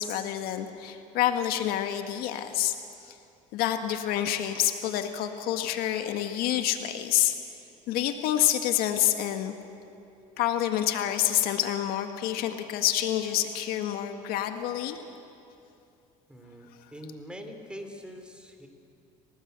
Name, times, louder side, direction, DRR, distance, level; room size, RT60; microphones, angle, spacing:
voice 1, 0.0-2.7 3.0-3.2 3.5-7.3 7.9-9.5 10.4-15.0, left 12 dB, 75° left, 7 dB, 1.6 m, -27 dB
voice 2, 16.3-18.7, equal, 5° right, 5 dB, 3.2 m, -43 dB
27.5 x 18.5 x 8.1 m, 2.6 s
cardioid pair, 110°, 16 cm